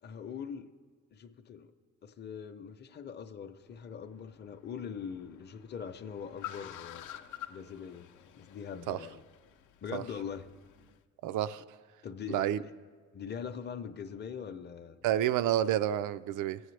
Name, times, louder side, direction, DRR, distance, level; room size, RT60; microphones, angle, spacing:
voice 1, 0.0-0.7 1.1-1.7 2.0-7.1 7.5-8.1 8.3-9.2 9.8-10.5 12.0-12.7 13.1-15.0, left 7 dB, 35° left, 0.6 m, -42 dB
Car, 3.6-11.0, left 12 dB, 80° left, 0.6 m, -50 dB
voice 2, 11.2-11.6 12.3-12.6 15.0-16.6, right 11 dB, 80° right, 0.5 m, -29 dB
18.0 x 7.9 x 3.3 m
cardioid pair, 90°, 30 cm